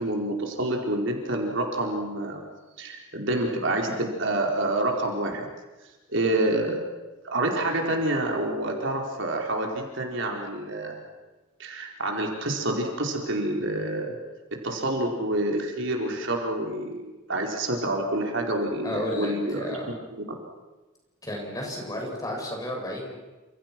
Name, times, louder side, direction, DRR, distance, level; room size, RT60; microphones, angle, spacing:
voice 1, 0.0-2.4 2.8-5.5 6.1-6.8 7.2-11.0 11.6-14.1 14.6-20.4, right 1 dB, 60° right, 1 dB, 4.6 m, -28 dB
voice 2, 18.8-19.9 21.2-23.2, left 1 dB, 15° left, 0 dB, 7.0 m, -32 dB
29.5 x 28.0 x 6.2 m, 1.2 s
head